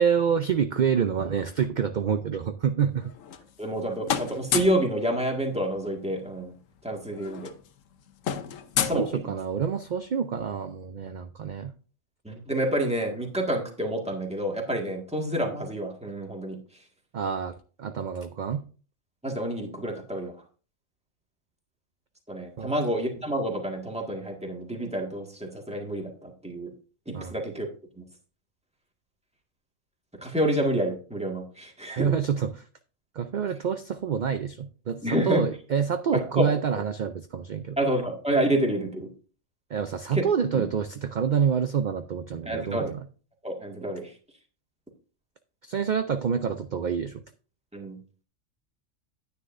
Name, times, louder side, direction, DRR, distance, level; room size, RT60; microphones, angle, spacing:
voice 1, 0.0-3.1 8.9-11.7 17.1-18.6 22.6-22.7 27.1-27.3 32.0-32.5 33.2-37.8 39.7-42.9 45.6-47.2, right 7 dB, 55° right, 9 dB, 0.5 m, -27 dB
sound 1, 3.0-3.8 4.0-4.9 6.2-6.3 6.6-6.8 7.1-9.7, left 8 dB, 90° left, 1.1 m, -31 dB
voice 2, 3.6-6.5 6.8-7.5 8.8-9.3 12.2-16.6 19.2-20.4 22.3-26.7 27.0-27.7 28.0-28.1 30.2-32.1 35.0-35.4 36.1-36.8 37.8-39.1 40.1-40.2 40.5-40.6 42.4-42.9 43.4-44.2 47.7-48.0, right 1 dB, 5° right, 0 dB, 1.7 m, -28 dB
9.9 x 9.6 x 2.6 m, 0.38 s
omnidirectional pair, 1.3 m